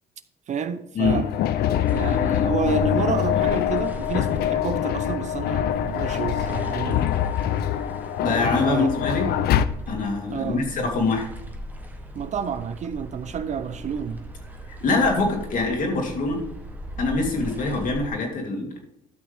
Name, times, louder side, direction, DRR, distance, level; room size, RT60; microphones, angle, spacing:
voice 1, 0.5-1.3 1.9-7.2 8.3-8.4 8.6-8.9 10.3-10.6 12.1-14.2, right 7 dB, 45° right, 0.6 m, -30 dB
sound 1, 1.0-9.7, left 10 dB, 70° left, 0.5 m, -24 dB
sound 2, 1.9-18.1, equal, 10° right, 1.3 m, -39 dB
voice 2, 8.2-9.3 9.9-11.2 14.8-16.4 17.0-18.7, left 3 dB, 55° left, 2.4 m, -24 dB
12.0 x 6.2 x 3.5 m
cardioid pair, 110°, 17 cm